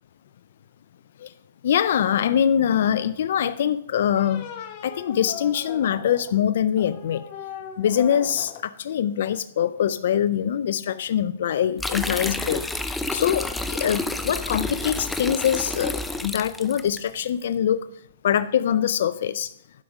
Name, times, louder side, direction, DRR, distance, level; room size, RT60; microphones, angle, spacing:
voice 1, 1.6-4.5 4.8-7.2 7.8-12.6 13.1-17.8 18.2-19.5, left 9 dB, 65° left, 13 dB, 0.4 m, -23 dB
sound 1, 2.5-2.9 3.9-6.4 6.8-8.6, left 8 dB, 45° left, 1.1 m, -39 dB
sound 2, 11.8-17.0, left 2 dB, 5° left, 0.5 m, -29 dB
11.0 x 5.1 x 4.8 m, 0.75 s
hypercardioid pair, 140°, 0 cm